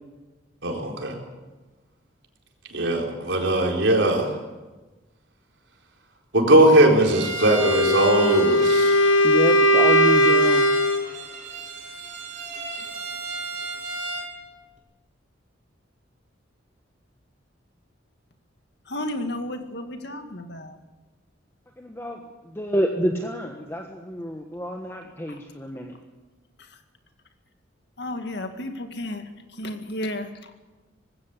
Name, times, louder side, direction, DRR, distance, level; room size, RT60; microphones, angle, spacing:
voice 1, 0.6-1.1 2.7-4.3 6.3-9.0, right 1 dB, 65° right, 1 dB, 4.4 m, -19 dB
Bowed string instrument, 7.1-14.3, right 2 dB, 40° right, 4.9 m, -34 dB
Wind instrument woodwind instrument, 7.5-11.1, equal, 90° left, 1.2 m, -18 dB
voice 2, 9.2-10.6 21.8-22.2 22.6-25.9, equal, 15° left, 2 dB, 1.4 m, -28 dB
voice 3, 18.9-20.8 25.3-25.4 28.0-30.3, left 1 dB, 60° left, 6 dB, 2.1 m, -32 dB
19.5 x 16.5 x 8.3 m, 1.2 s
head